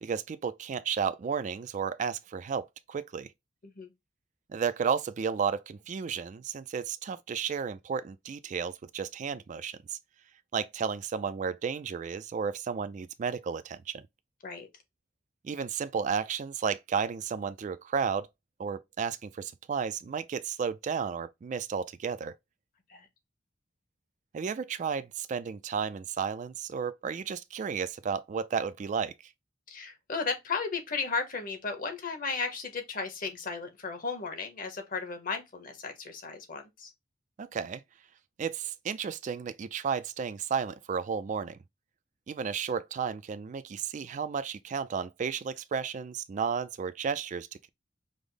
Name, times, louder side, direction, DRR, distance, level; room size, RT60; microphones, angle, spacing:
voice 1, 0.0-3.3 4.5-10.0 10.5-14.0 15.4-18.3 18.6-22.3 24.3-29.1 37.4-37.8 38.4-41.6 42.3-47.7, right 6 dB, 40° right, 0.3 m, -33 dB
voice 2, 29.7-36.9, left 4 dB, 50° left, 1.0 m, -35 dB
5.0 x 2.0 x 3.8 m
head